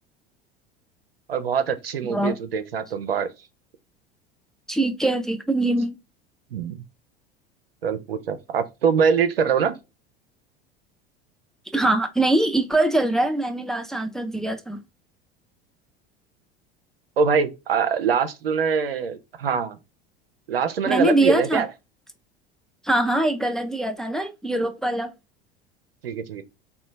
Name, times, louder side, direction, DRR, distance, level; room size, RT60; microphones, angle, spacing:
voice 1, 1.3-3.3 6.5-6.8 7.8-9.7 17.2-19.8 20.5-21.7 26.0-26.4, right 6 dB, 80° right, 0.6 m, -23 dB
voice 2, 4.7-6.0 11.7-14.8 20.9-21.7 22.8-25.1, right 2 dB, ahead, 0.4 m, -23 dB
3.8 x 2.3 x 3.1 m
figure-of-eight pair, 75°, 29 cm